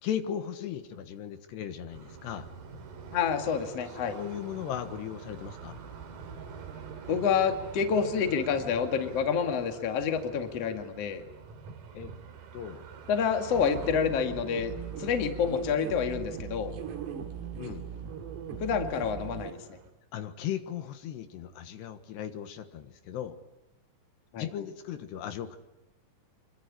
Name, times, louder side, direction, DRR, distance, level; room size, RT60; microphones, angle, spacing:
voice 1, 0.0-2.5 4.1-5.8 11.9-12.1 12.5-12.8 17.6-17.9 20.1-23.4 24.4-25.6, left 9 dB, 75° left, 9 dB, 3.4 m, -37 dB
sound 1, 1.9-19.9, right 5 dB, 55° right, 3.5 m, -46 dB
voice 2, 3.1-4.1 7.1-11.2 13.1-14.7 15.0-16.7 18.6-19.6 24.3-24.5, left 6 dB, 45° left, 6 dB, 2.4 m, -28 dB
sound 2, 13.5-19.5, right 7 dB, 70° right, 4.6 m, -39 dB
26.5 x 23.0 x 9.8 m, 0.95 s
omnidirectional pair, 5.1 m